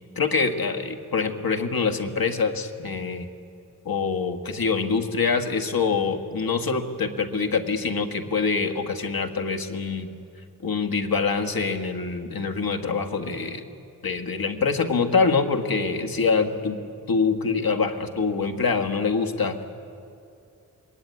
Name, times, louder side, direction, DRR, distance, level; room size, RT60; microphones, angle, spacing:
voice 1, 0.2-3.3 3.9-10.1 10.6-13.6 14.0-16.8 17.1-19.6, left 4 dB, 80° left, 4 dB, 1.9 m, -25 dB
25.5 x 21.5 x 9.5 m, 2.5 s
wide cardioid pair, 95°, 35 cm